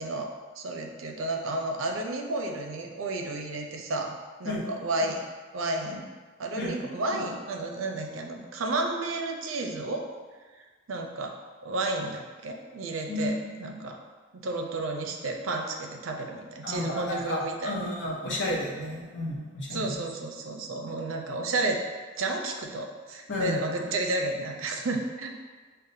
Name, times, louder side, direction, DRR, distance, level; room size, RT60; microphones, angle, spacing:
voice 1, 0.0-5.2 5.5-6.1 6.4-10.1 10.6-11.4 11.6-14.0 14.3-17.8 19.7-21.8 22.2-25.3, right 2 dB, 85° right, 2 dB, 0.5 m, -32 dB
voice 2, 6.6-6.9 13.1-13.3 16.6-19.9 23.3-23.6, left 1 dB, 60° left, -3 dB, 0.8 m, -32 dB
6.4 x 2.1 x 2.7 m, 1.4 s
head